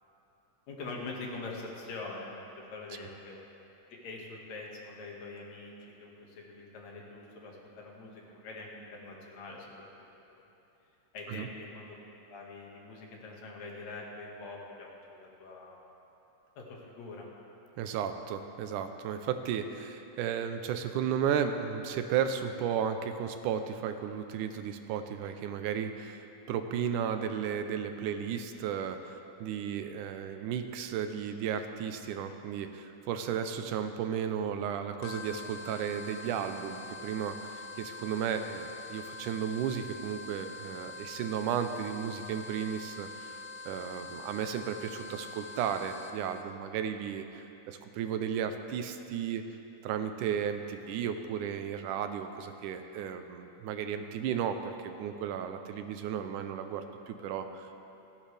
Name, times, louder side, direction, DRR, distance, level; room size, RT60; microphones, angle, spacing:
voice 1, 0.7-3.4 3.9-5.7 6.0-9.9 11.1-12.0 12.3-15.8 16.6-17.3, left 3 dB, 60° left, -2 dB, 3.0 m, -44 dB
voice 2, 17.8-43.4 43.7-49.4 49.8-57.8, right 8 dB, 80° right, 8 dB, 2.2 m, -34 dB
sound 1, 35.0-46.4, left 3 dB, 85° left, 2.2 m, -45 dB
28.0 x 10.0 x 3.4 m, 2.9 s
omnidirectional pair, 3.7 m